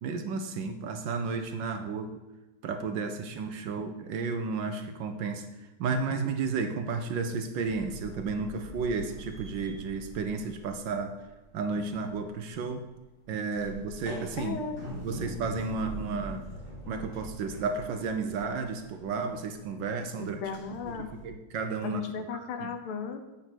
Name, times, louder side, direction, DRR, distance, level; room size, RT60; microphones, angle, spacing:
voice 1, 0.0-2.2 2.6-11.1 11.5-12.8 13.3-14.6 15.0-16.4 16.9-20.4 20.8-22.0 22.3-22.8, right 4 dB, 65° right, 7 dB, 1.3 m, -33 dB
sound 1, 7.6-11.4 11.6-21.3, equal, 25° left, 1.7 m, -44 dB
voice 2, 14.4-14.8 20.2-21.1 21.8-23.2, left 5 dB, 80° left, 7 dB, 1.9 m, -35 dB
8.8 x 5.5 x 6.1 m, 1.1 s
omnidirectional pair, 2.4 m